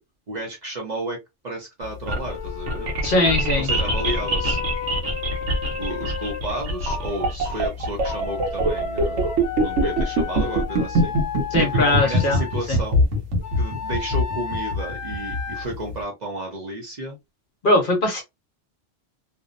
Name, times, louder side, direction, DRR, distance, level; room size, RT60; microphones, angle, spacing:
voice 1, 0.3-1.2 1.4-2.9 3.6-4.6 5.8-9.3 9.6-11.2 11.6-13.1 13.6-17.2, right 1 dB, 45° right, 0.7 m, -32 dB
sound 1, 1.8-15.9, equal, 85° right, 1.1 m, -23 dB
Wind instrument woodwind instrument, 2.3-7.3 8.0-12.7 13.4-15.7, left 6 dB, 80° left, 0.9 m, -33 dB
voice 2, 3.0-3.7 11.5-12.4 12.7-12.8 17.6-18.2, left 2 dB, 50° left, 0.8 m, -20 dB
2.6 x 2.1 x 2.4 m
omnidirectional pair, 1.2 m